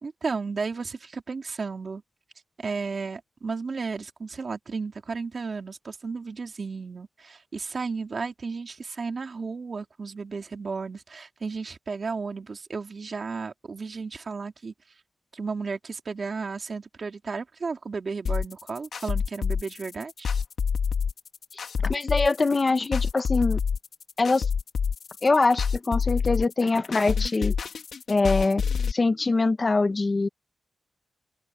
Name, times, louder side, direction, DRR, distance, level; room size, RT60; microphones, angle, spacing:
voice 1, 0.0-2.0 2.6-14.7 15.3-20.3, right 4 dB, 40° right, 3.1 m, -33 dB
sound 1, 18.3-28.9, left 6 dB, 60° left, 2.7 m, -27 dB
voice 2, 21.8-23.6 24.2-24.5 25.2-27.5 28.1-28.6 28.9-30.3, left 3 dB, 30° left, 1.4 m, -23 dB
wide cardioid pair, 125°, 0 cm